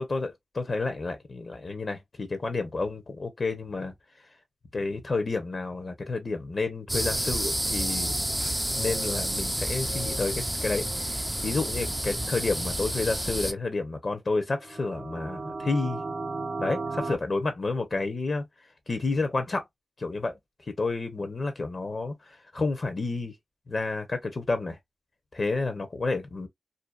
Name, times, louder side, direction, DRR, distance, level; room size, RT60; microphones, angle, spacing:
voice 1, 0.0-3.9 4.7-8.2 8.8-16.0 16.6-18.5 18.9-19.6 20.0-23.3 23.7-24.8 25.3-26.5, left 3 dB, 55° left, 0.7 m, -30 dB
sound 1, 6.9-13.5, equal, 10° right, 0.3 m, -29 dB
sound 2, 14.6-17.2, right 3 dB, 60° right, 0.5 m, -34 dB
2.7 x 2.2 x 2.2 m
wide cardioid pair, 75°, 0 cm